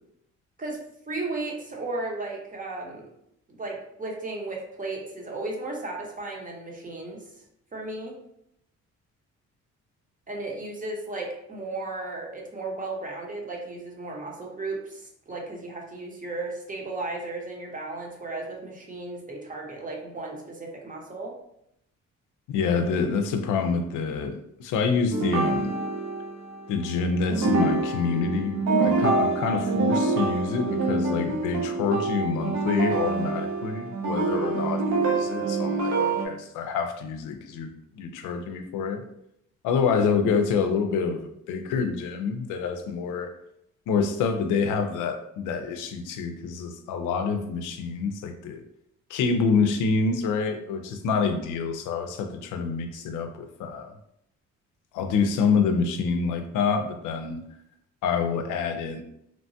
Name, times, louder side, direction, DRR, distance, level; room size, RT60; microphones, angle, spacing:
voice 1, 1.1-3.1 3.6-7.2 7.7-8.1 10.3-21.4, right 2 dB, 25° right, -1 dB, 0.8 m, -35 dB
voice 2, 22.5-25.8 26.7-39.0 39.6-43.3 43.9-48.6 49.1-53.9 54.9-57.4 58.0-59.0, left 5 dB, 90° left, 7 dB, 0.5 m, -27 dB
sound 1, 25.1-26.9 27.3-36.3, right 3 dB, 65° right, 0.7 m, -26 dB
2.9 x 2.2 x 2.7 m, 0.77 s
cardioid pair, 90°, 30 cm